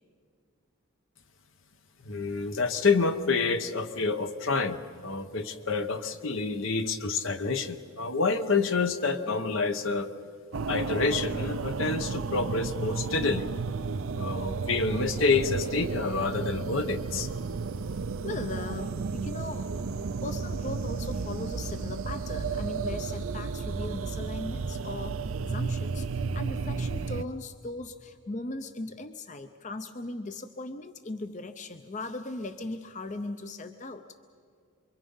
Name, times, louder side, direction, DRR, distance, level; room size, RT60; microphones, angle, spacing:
voice 1, 2.0-10.1 10.7-13.5 14.2-17.3, left 4 dB, 70° left, 9 dB, 1.0 m, -28 dB
sound 1, 10.5-27.2, right 4 dB, 75° right, 0.5 m, -33 dB
voice 2, 18.2-34.0, left 2 dB, 35° left, 9 dB, 0.6 m, -38 dB
28.0 x 23.5 x 5.6 m, 2.2 s
head